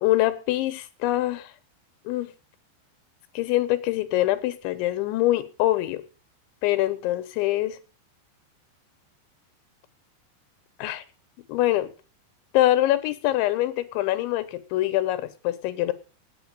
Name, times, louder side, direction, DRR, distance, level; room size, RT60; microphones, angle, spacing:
voice 1, 0.0-1.5 2.1-2.3 3.4-6.0 6.6-7.8 10.8-11.0 11.5-11.9 12.5-15.9, left 15 dB, 90° left, 3.4 m, -24 dB
9.0 x 8.9 x 8.8 m
omnidirectional pair, 5.2 m